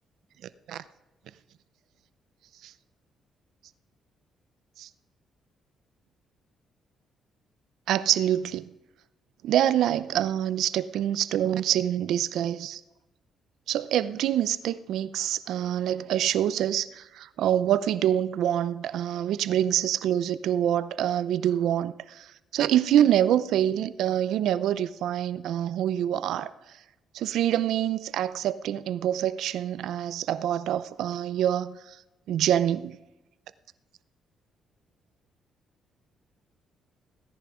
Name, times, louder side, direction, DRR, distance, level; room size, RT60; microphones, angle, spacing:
voice 1, 7.9-8.7 9.4-12.8 13.7-26.5 27.1-32.0 32.3-33.0, right 11 dB, 80° right, 0.6 m, -26 dB
16.5 x 10.5 x 5.0 m
cardioid pair, 90°, 0 cm